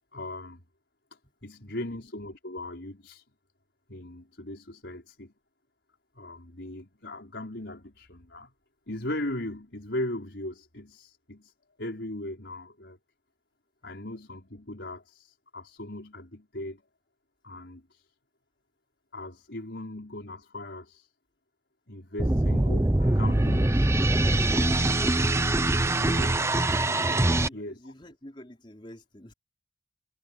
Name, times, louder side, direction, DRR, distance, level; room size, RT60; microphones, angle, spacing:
voice 1, 0.1-0.6 1.4-3.2 3.9-5.3 6.2-8.5 8.9-11.5 11.8-13.0 13.8-16.8 17.4-18.0 19.1-21.1 21.9-23.9 24.3-25.0 25.9-26.6 27.5-27.9, left 1 dB, 70° left, 5.2 m, -38 dB
voice 2, 1.2-1.8 24.5-24.9 27.1-29.3, equal, 25° left, 4.2 m, -48 dB
sound 1, 22.2-27.5, right 1 dB, 15° right, 0.6 m, -23 dB
head